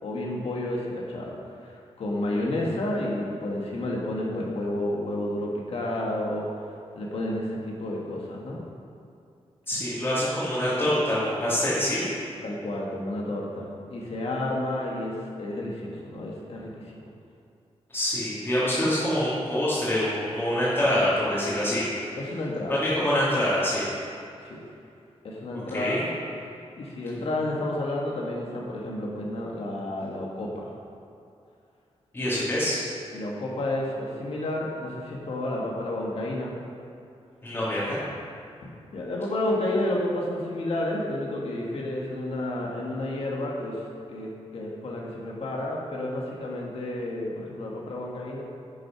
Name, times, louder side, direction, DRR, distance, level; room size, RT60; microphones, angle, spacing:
voice 1, 0.0-6.5 6.9-8.6 12.4-17.0 22.2-22.8 24.4-24.6 25.2-26.0 26.8-30.7 33.1-36.5 38.6-43.8 44.1-48.4, left 1 dB, 65° left, -3 dB, 1.6 m, -31 dB
voice 2, 9.7-12.0 17.9-21.8 22.7-23.9 25.7-26.0 32.1-32.8 37.4-38.0, left 1 dB, 20° left, -11 dB, 2.4 m, -25 dB
10.5 x 6.4 x 6.0 m, 2.5 s
wide cardioid pair, 180°, 11 cm